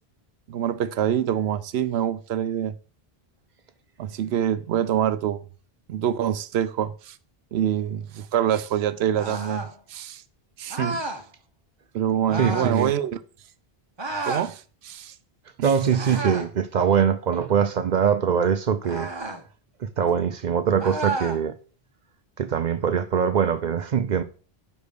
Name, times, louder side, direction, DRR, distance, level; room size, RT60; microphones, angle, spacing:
voice 1, 0.5-2.7 4.0-5.4 5.9-7.2 7.5-9.6 9.9-10.2 10.6-11.0 11.9-13.2 14.2-15.1, right 10 dB, 90° right, 0.9 m, -25 dB
sound 1, 9.1-9.7 10.7-11.2 12.3-12.8 14.0-14.5 15.9-16.5 18.8-19.4 20.8-21.4, right 2 dB, 30° right, 0.9 m, -31 dB
voice 2, 12.4-12.9 15.6-19.1 19.8-21.6 22.4-24.2, right 7 dB, 55° right, 0.6 m, -22 dB
5.2 x 5.2 x 6.5 m
omnidirectional pair, 1.0 m